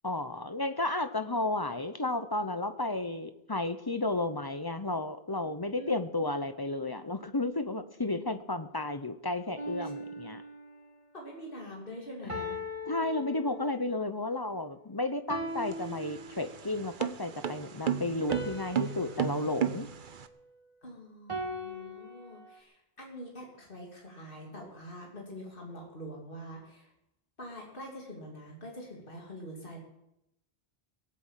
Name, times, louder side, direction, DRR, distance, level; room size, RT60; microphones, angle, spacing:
voice 1, 0.0-10.4 12.9-19.9, left 2 dB, 25° left, 10 dB, 0.7 m, -33 dB
sound 1, 9.6-10.9 12.3-13.9 15.3-16.8 18.3-20.7 21.3-22.6, equal, 30° right, 1.6 m, -40 dB
voice 2, 11.1-12.6 20.8-26.9 27.4-29.8, equal, 60° left, -2 dB, 3.2 m, -45 dB
sound 2, 15.5-20.3, right 8 dB, 55° right, 0.9 m, -34 dB
18.5 x 8.7 x 7.4 m, 0.83 s
omnidirectional pair, 1.0 m